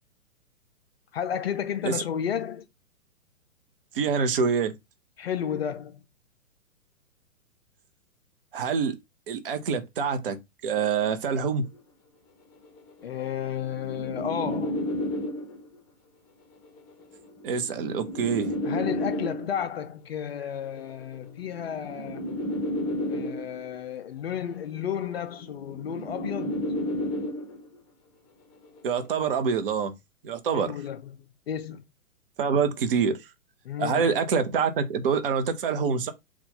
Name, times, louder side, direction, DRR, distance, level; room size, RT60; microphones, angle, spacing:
voice 1, 1.1-2.7 5.2-6.0 13.0-14.9 18.6-22.4 23.1-26.7 30.5-31.8 33.6-34.1, left 9 dB, 45° left, 0.5 m, -32 dB
voice 2, 3.9-4.7 8.5-8.9 9.3-11.6 17.4-18.5 28.8-29.9 30.2-30.8 32.4-33.2 33.8-36.1, right 6 dB, 40° right, 0.7 m, -26 dB
sound 1, 11.5-11.8 12.6-15.8 16.8-19.8 20.8-23.8 24.8-27.8 28.8-29.1, left 1 dB, 25° left, 0.9 m, -32 dB
4.1 x 2.4 x 3.8 m
figure-of-eight pair, 120°, 42 cm